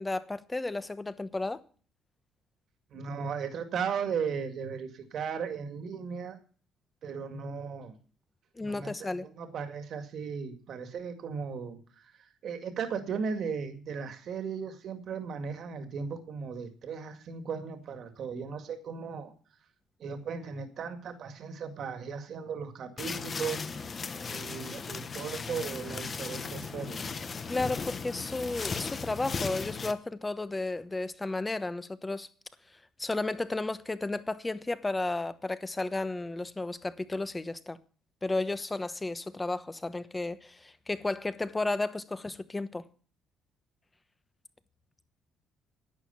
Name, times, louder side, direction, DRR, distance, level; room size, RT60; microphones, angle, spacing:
voice 1, 0.0-1.6 8.6-9.3 27.5-32.3 33.0-37.8 38.2-42.8, left 2 dB, 15° left, 1.0 m, -33 dB
voice 2, 2.9-6.4 7.0-8.0 8.6-11.8 12.4-19.3 20.0-23.6 24.3-27.1, right 6 dB, 60° right, 2.1 m, -36 dB
sound 1, 23.0-29.9, left 5 dB, 35° left, 1.1 m, -37 dB
11.0 x 9.1 x 7.0 m
cardioid pair, 100°, 0 cm